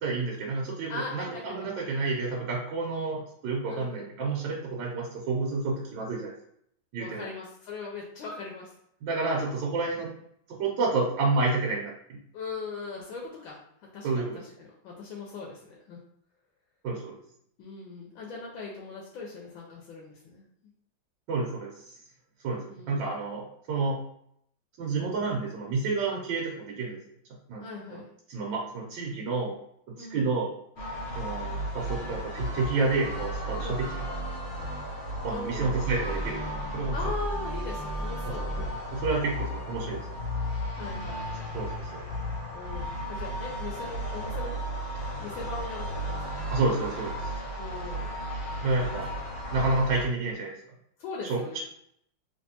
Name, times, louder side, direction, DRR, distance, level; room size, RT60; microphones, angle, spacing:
voice 1, 0.0-6.3 6.9-7.3 9.0-10.1 10.5-12.2 14.0-14.3 16.8-17.1 21.3-21.9 22.4-24.0 24.8-27.0 27.5-27.6 27.9-28.0 28.3-29.6 30.0-30.5 31.2-33.9 35.2-37.0 38.6-38.7 38.9-40.1 41.5-42.0 46.5-47.3 48.6-49.1 49.5-50.5 51.3-51.6, right 3 dB, 75° right, -2 dB, 1.4 m, -29 dB
voice 2, 0.9-1.7 3.7-4.1 7.0-8.8 12.3-16.0 17.6-20.4 22.7-23.0 27.6-28.1 30.0-30.3 33.6-33.8 35.3-35.8 36.9-38.6 40.7-41.5 42.5-44.6 45.2-46.5 47.6-48.1 48.9-49.0 49.3-49.4 51.0-51.6, left 4 dB, 90° left, -2 dB, 1.5 m, -40 dB
sound 1, 30.8-50.1, equal, 55° left, 0.7 m, -34 dB
3.3 x 3.0 x 2.7 m, 0.71 s
omnidirectional pair, 2.1 m